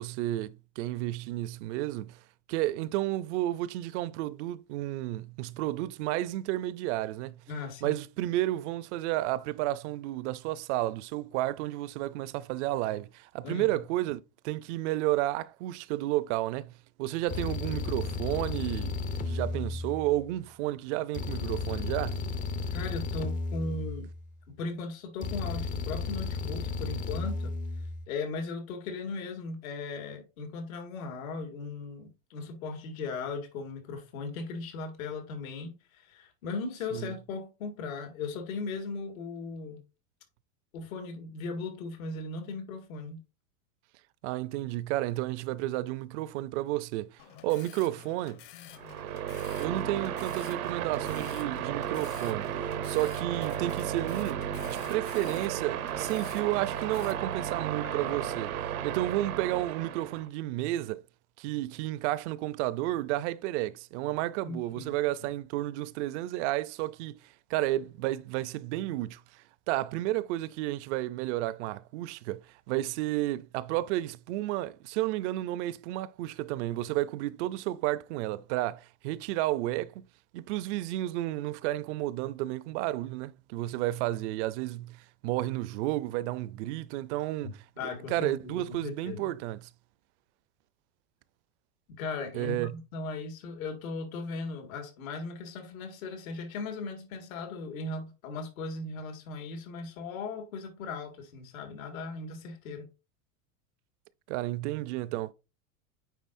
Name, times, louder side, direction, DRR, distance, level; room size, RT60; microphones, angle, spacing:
voice 1, 0.0-2.2 2.5-7.3 7.8-16.7 17.0-22.2 36.9-37.1 44.2-48.4 49.6-58.5 58.8-61.0 61.4-67.2 67.5-72.4 72.7-80.0 80.3-89.7 92.3-92.8 104.3-105.3, right 16 dB, 55° right, 0.6 m, -32 dB
voice 2, 7.5-8.0 13.4-13.8 22.7-24.1 24.5-27.6 28.1-39.8 40.7-43.2 57.8-58.1 64.5-64.9 65.2-65.3 87.4-89.3 92.0-102.9, left 4 dB, 75° left, 2.0 m, -38 dB
sound 1, 17.3-20.4 21.1-24.4 25.2-28.1, left 4 dB, 20° left, 0.5 m, -34 dB
sound 2, 47.2-57.1, left 11 dB, 50° left, 1.1 m, -50 dB
sound 3, 48.7-60.3, right 10 dB, 90° right, 1.0 m, -34 dB
9.3 x 3.9 x 2.6 m
supercardioid pair, 130°, 42 cm